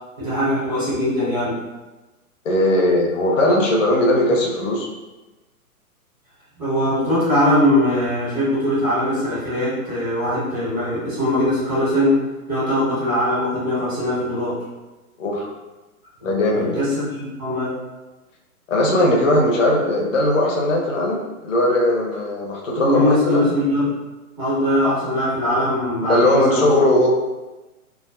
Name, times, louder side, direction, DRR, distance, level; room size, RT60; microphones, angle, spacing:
voice 1, 0.2-1.6 6.6-12.2 12.5-14.6 16.2-17.0 17.4-17.7 22.8-24.0 24.4-26.7, left 1 dB, 5° right, -11 dB, 0.5 m, -21 dB
voice 2, 2.4-4.9 15.2-15.5 16.2-16.8 18.7-23.5 26.1-27.1, left 1 dB, 60° left, -2 dB, 0.7 m, -19 dB
2.4 x 2.3 x 2.2 m, 1.1 s
figure-of-eight pair, 125°, 44 cm